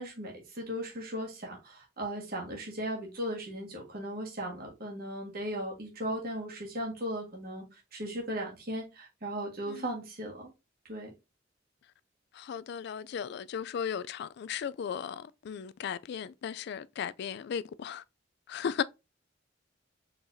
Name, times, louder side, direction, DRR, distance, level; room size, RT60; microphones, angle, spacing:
voice 1, 0.0-10.5 10.9-11.1, equal, 55° right, 1.6 m, -37 dB
voice 2, 12.3-18.0 18.5-18.8, left 7 dB, 60° left, 0.3 m, -36 dB
4.5 x 3.9 x 2.6 m
head